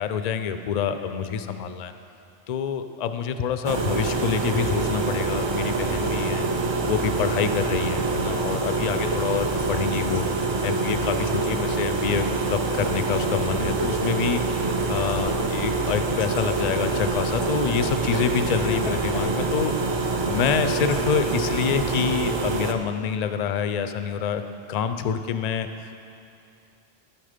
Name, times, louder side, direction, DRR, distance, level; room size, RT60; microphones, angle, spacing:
voice 1, 0.0-1.9 2.5-14.4 14.9-19.7 20.3-24.4 24.7-25.7, left 7 dB, 55° left, 9 dB, 0.5 m, -27 dB
sound 1, 3.6-22.7, right 3 dB, 35° right, 0.5 m, -26 dB
sound 2, 6.1-6.2 6.8-6.9 7.7-21.5, left 5 dB, 85° left, 0.9 m, -43 dB
13.5 x 5.9 x 5.0 m, 2.5 s
omnidirectional pair, 1.1 m